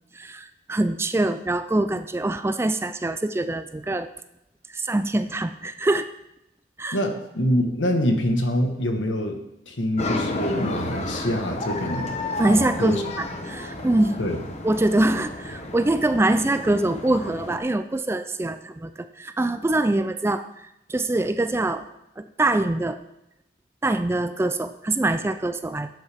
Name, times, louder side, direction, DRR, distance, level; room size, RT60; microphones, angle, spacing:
voice 1, 0.1-4.1 4.7-6.1 6.8-7.0 12.4-14.2 14.6-21.8 22.2-23.0 23.8-25.9, right 2 dB, 15° right, 10 dB, 0.3 m, -24 dB
voice 2, 6.9-9.4 9.7-13.0 14.2-14.4, equal, 75° left, 4 dB, 1.4 m, -25 dB
sound 1, 10.0-17.6, left 2 dB, 35° left, 1.0 m, -32 dB
12.0 x 7.9 x 3.5 m, 0.87 s
head